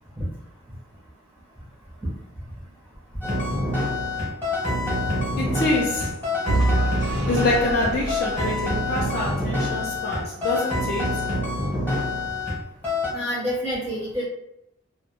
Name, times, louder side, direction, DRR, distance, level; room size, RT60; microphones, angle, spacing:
sound 1, 3.2-12.6 12.8-13.1, left 1 dB, 10° left, 0.9 m, -26 dB
voice 1, 5.4-6.1 7.3-11.2, left 2 dB, 50° left, -3 dB, 0.4 m, -26 dB
Vehicle / Engine, 6.5-9.5, right 2 dB, 60° right, 0.4 m, -27 dB
voice 2, 13.1-14.2, equal, 10° right, -6 dB, 0.5 m, -27 dB
2.2 x 2.1 x 2.9 m, 0.81 s
head